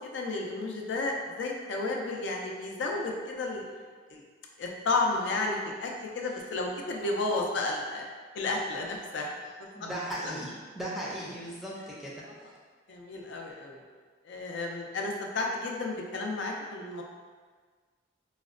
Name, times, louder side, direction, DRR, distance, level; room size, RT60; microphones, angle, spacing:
voice 1, 0.0-3.7 4.1-4.2 4.6-8.0 8.3-9.3 9.8-9.9 10.2-10.3 12.2-12.3 12.9-13.8 14.3-17.0, left 2 dB, 70° left, 0 dB, 0.4 m, -32 dB
voice 2, 9.7-12.2, right 1 dB, ahead, -6 dB, 0.4 m, -37 dB
4.8 x 2.1 x 2.4 m, 1.5 s
head